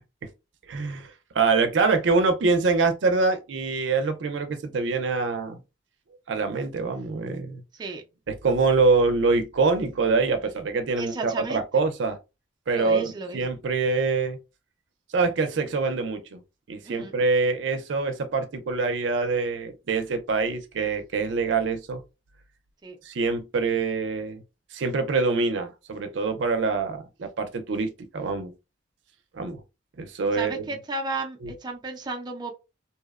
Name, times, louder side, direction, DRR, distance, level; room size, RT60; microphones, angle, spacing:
voice 1, 0.7-5.6 6.3-7.6 8.3-12.2 12.7-14.4 15.1-16.4 16.7-22.0 23.0-24.4 24.7-28.5 29.3-29.6 30.0-30.7 31.4-31.5, right 4 dB, 80° right, 0.5 m, -25 dB
voice 2, 11.0-11.6 12.7-13.4 16.8-17.1 22.8-23.0 30.3-32.5, right 3 dB, 25° right, 0.4 m, -33 dB
2.7 x 2.0 x 2.3 m
head